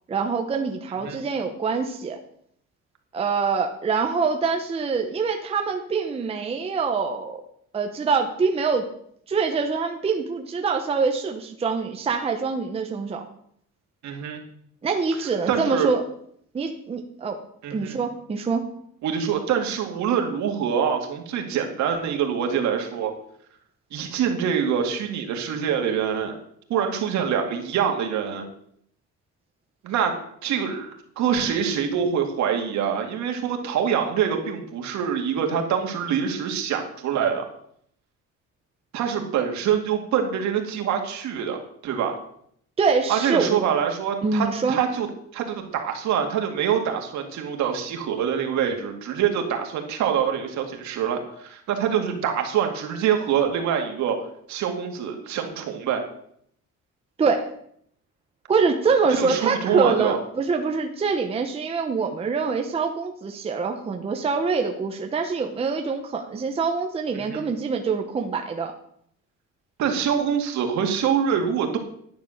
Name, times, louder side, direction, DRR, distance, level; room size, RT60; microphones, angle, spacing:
voice 1, 0.1-2.2 3.1-7.4 7.7-8.8 9.3-13.2 14.8-16.0 16.5-17.4 17.7-18.7 42.8-43.6 44.2-44.8 57.2-57.5 58.5-68.7, right 5 dB, 20° right, 4 dB, 0.8 m, -25 dB
voice 2, 14.0-14.4 15.5-15.9 17.6-18.0 19.0-23.1 23.9-26.4 26.7-28.5 29.8-30.1 30.4-37.4 38.9-42.2 43.1-45.1 45.3-54.2 54.5-56.0 59.2-60.2 67.1-67.5 69.8-71.8, right 8 dB, 65° right, 3 dB, 2.2 m, -25 dB
10.5 x 9.4 x 6.5 m, 0.68 s
cardioid pair, 180°, 31 cm